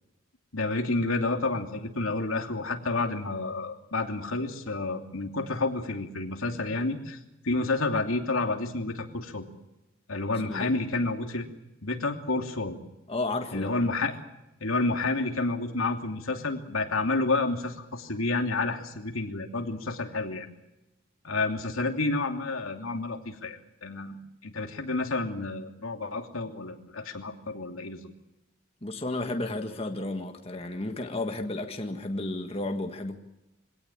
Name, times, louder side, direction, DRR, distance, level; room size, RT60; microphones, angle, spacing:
voice 1, 0.5-7.2 7.4-9.5 10.1-11.5 11.8-12.8 13.5-14.1 14.6-20.5 21.2-24.2 24.4-28.1, left 3 dB, 90° left, 2.9 m, -30 dB
voice 2, 10.4-10.8 13.1-13.8 28.8-33.2, left 2 dB, 30° left, 1.7 m, -32 dB
24.5 x 18.0 x 8.8 m
head